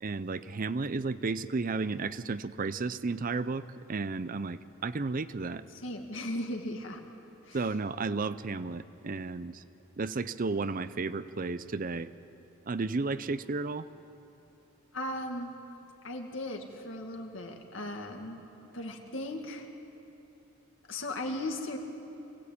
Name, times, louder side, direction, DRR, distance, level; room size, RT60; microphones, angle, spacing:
voice 1, 0.0-3.6 3.9-5.6 7.5-9.6 10.0-12.1 12.7-13.8, right 3 dB, 40° right, 14 dB, 0.5 m, -33 dB
voice 2, 5.7-7.0 7.5-7.7 14.9-15.6 16.0-18.4 18.7-19.7 20.9-21.8, left 1 dB, 65° left, 3 dB, 2.2 m, -37 dB
24.0 x 17.5 x 8.6 m, 2.9 s
head